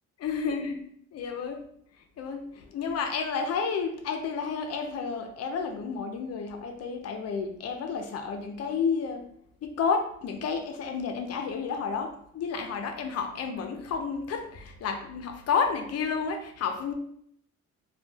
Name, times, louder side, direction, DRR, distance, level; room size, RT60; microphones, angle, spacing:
voice 1, 0.2-0.8 1.1-1.6 2.2-9.2 9.6-16.9, left 5 dB, 55° left, 5 dB, 0.4 m, -31 dB
2.2 x 2.1 x 3.2 m, 0.68 s
cardioid pair, 90°, 30 cm